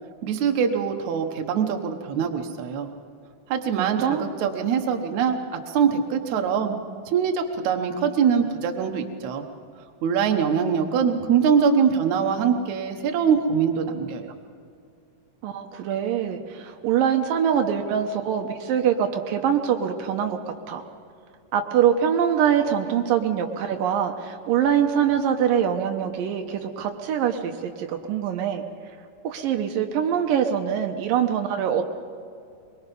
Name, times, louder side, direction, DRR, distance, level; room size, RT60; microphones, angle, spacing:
voice 1, 0.2-2.9 3.5-6.8 7.1-9.4 10.0-14.3, right 7 dB, 65° right, 4 dB, 2.4 m, -23 dB
voice 2, 3.8-4.3 15.4-20.4 20.7-20.8 21.5-28.6 29.2-31.9, right 8 dB, 80° right, 4 dB, 2.7 m, -24 dB
23.5 x 22.5 x 5.4 m, 2.4 s
omnidirectional pair, 4.0 m